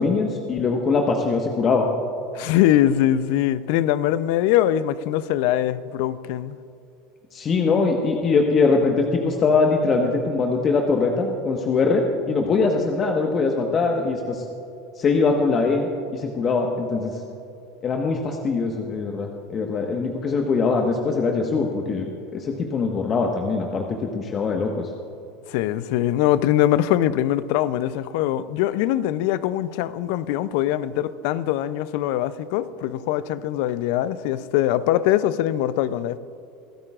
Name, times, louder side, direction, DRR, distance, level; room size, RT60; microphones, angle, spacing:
voice 1, 0.0-1.9 7.3-14.4 15.0-17.1 17.8-22.1 22.3-24.9, left 4 dB, 35° left, 2 dB, 1.4 m, -22 dB
voice 2, 2.3-6.6 25.5-36.2, left 12 dB, 65° left, 15 dB, 0.5 m, -22 dB
25.5 x 13.0 x 2.5 m, 2.7 s
hypercardioid pair, 85°, 0 cm